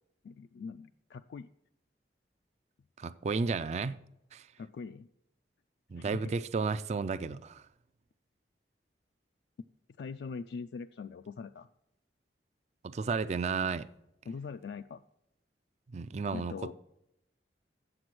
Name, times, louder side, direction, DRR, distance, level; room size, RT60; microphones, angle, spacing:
voice 1, 0.2-1.5 4.6-5.1 6.0-6.3 10.0-11.7 14.3-15.0 16.3-16.7, left 5 dB, 65° left, 0.3 m, -42 dB
voice 2, 3.0-4.0 4.3-4.5 5.9-7.7 12.8-13.9 15.9-16.5, right 4 dB, 40° right, 0.3 m, -32 dB
7.9 x 7.4 x 6.0 m
head